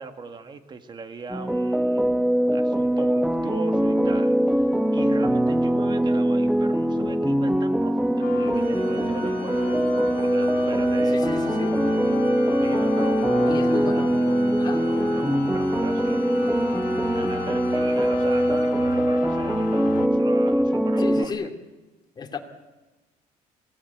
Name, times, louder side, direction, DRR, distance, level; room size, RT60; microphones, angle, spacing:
voice 1, 0.0-11.3 12.6-13.8 14.8-16.2 17.1-21.4, right 4 dB, 30° right, 8 dB, 2.0 m, -39 dB
sound 1, 1.3-21.2, right 1 dB, 5° right, 0.9 m, -22 dB
sound 2, 8.2-20.1, left 12 dB, 70° left, 1.2 m, -36 dB
Organ, 8.5-19.2, right 10 dB, 85° right, 2.5 m, -44 dB
voice 2, 11.1-11.8 13.5-14.2 14.6-14.9 21.0-21.5 22.2-22.4, left 5 dB, 30° left, 4 dB, 2.6 m, -33 dB
25.0 x 17.5 x 8.2 m, 1.2 s
cardioid pair, 130°, 15 cm